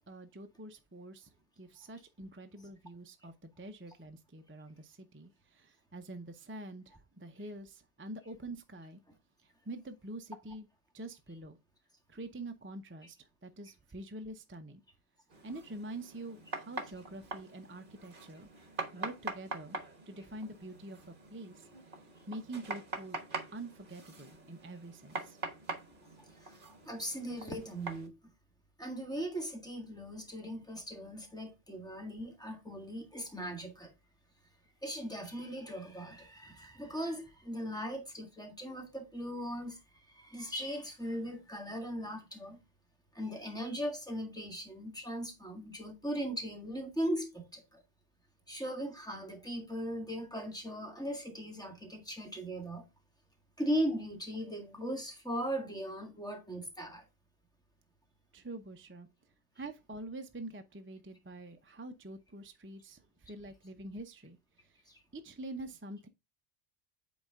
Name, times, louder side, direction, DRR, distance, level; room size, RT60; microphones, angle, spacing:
voice 1, 0.1-9.0 9.4-10.7 10.9-11.6 12.1-14.8 15.4-18.5 18.9-19.8 20.1-21.7 22.3-23.2 23.5-25.4 36.5-36.6 58.3-59.1 59.6-64.8 65.1-66.1, right 2 dB, 15° right, 0.5 m, -46 dB
sound 1, 15.3-28.1, right 3 dB, 50° right, 1.4 m, -44 dB
voice 2, 26.8-28.1 28.8-33.9 34.8-42.6 43.1-47.8 48.5-52.8 53.6-57.0 59.6-59.7 64.9-65.0, equal, 5° left, 1.7 m, -38 dB
8.5 x 4.2 x 3.6 m
omnidirectional pair, 1.2 m